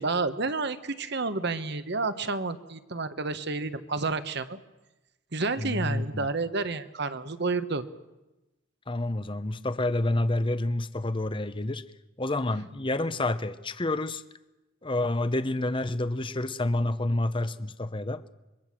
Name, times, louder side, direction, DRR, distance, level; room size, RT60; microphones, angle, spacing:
voice 1, 0.0-4.6 5.3-7.8, right 3 dB, 55° right, 1.4 m, -30 dB
voice 2, 5.6-6.3 8.9-11.8 12.2-14.2 14.8-18.2, left 2 dB, 25° left, 0.9 m, -28 dB
26.0 x 23.0 x 7.6 m
head